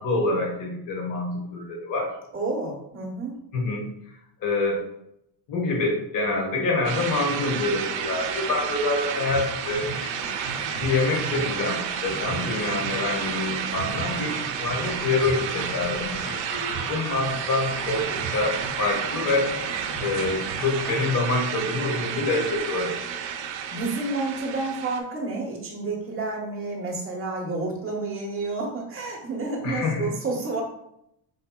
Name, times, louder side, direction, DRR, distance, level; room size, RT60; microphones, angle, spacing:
voice 1, 0.0-2.1 3.5-3.9 4.4-4.8 5.5-10.1 10.7-19.5 20.0-23.3 29.6-30.1, left 3 dB, 40° left, 0 dB, 1.2 m, -26 dB
voice 2, 2.3-3.4 23.7-30.6, right 3 dB, 25° right, -2 dB, 1.1 m, -30 dB
sound 1, 6.8-25.0, right 8 dB, 70° right, 0.7 m, -31 dB
sound 2, 9.3-21.1, right 2 dB, ahead, 1.4 m, -37 dB
5.2 x 4.2 x 2.2 m, 0.77 s
cardioid pair, 165°, 48 cm